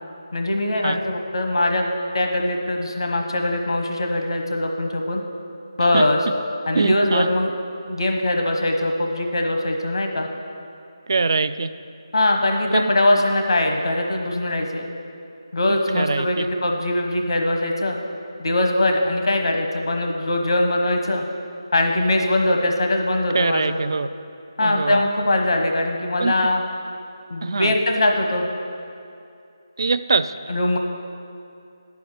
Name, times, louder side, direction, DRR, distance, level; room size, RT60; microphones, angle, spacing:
voice 1, 0.3-5.2 5.8-6.2 6.7-7.5 7.9-10.3 12.1-14.9 15.5-18.0 18.4-21.2 21.7-23.8 24.6-26.6 27.3-28.5 30.5-30.8, left 1 dB, 70° left, 3 dB, 1.1 m, -21 dB
voice 2, 6.7-7.3 11.1-11.7 12.7-12.9 15.7-16.5 23.3-24.1 24.6-25.0 26.2-26.3 27.4-27.7 29.8-30.3, right 4 dB, 55° right, 13 dB, 0.4 m, -23 dB
9.2 x 7.0 x 6.6 m, 2.6 s
figure-of-eight pair, 165°, 3 cm